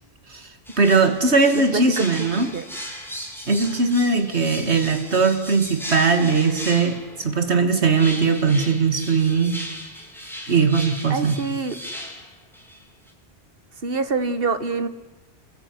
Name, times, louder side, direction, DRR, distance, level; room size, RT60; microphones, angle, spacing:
sound 1, 0.7-7.2 7.9-12.8 13.1-13.2, equal, ahead, 4.5 m, -37 dB
voice 1, 0.8-2.5 3.5-9.6 10.5-11.4, right 4 dB, 85° right, 7 dB, 2.5 m, -20 dB
voice 2, 1.5-2.3 2.5-2.7 11.1-11.8 13.8-14.9, right 4 dB, 60° right, 11 dB, 1.9 m, -25 dB
27.0 x 22.0 x 9.9 m, 1.1 s
omnidirectional pair, 1.1 m